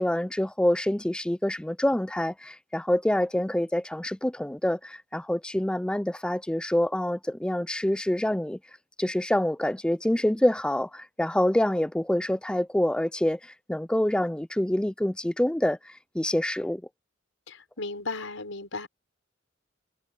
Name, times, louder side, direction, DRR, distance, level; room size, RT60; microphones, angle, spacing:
voice 1, 0.0-8.6 9.0-16.8, left 1 dB, 5° left, 0.4 m, -26 dB
voice 2, 17.5-18.9, left 3 dB, 90° left, 5.2 m, -35 dB
head